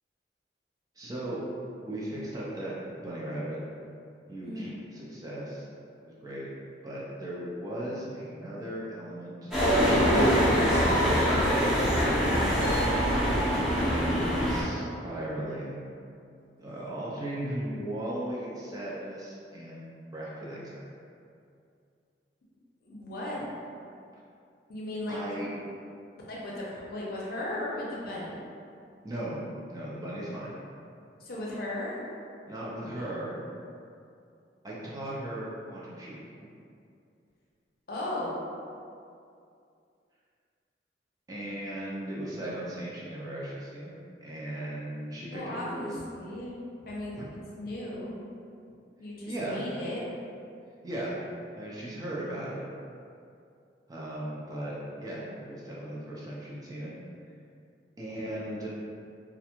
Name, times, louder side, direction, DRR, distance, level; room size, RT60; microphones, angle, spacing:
voice 1, 1.0-1.5 1.9-2.7 3.0-3.6 4.3-5.7 6.0-6.5 6.8-9.5 10.2-11.2 11.7-13.2 13.7-15.8 16.6-20.8 25.1-25.5 29.0-29.4 29.7-30.5 32.5-33.4 34.6-36.5 41.3-43.9 44.2-45.9 47.1-47.3 49.3-49.6 50.8-51.2 51.6-52.6 53.9-54.7 55.0-56.9 58.0-58.7, right 1 dB, 20° right, -7 dB, 0.4 m, -37 dB
sound 1, 9.5-14.6, equal, ahead, 0.9 m, -24 dB
voice 2, 22.8-23.4 24.7-25.2 26.3-28.4 31.2-32.0 37.9-38.4 45.3-46.5 46.9-47.2 47.6-48.2 49.0-50.1, left 1 dB, 55° left, -5 dB, 0.6 m, -36 dB
2.4 x 2.2 x 2.9 m, 2.5 s
head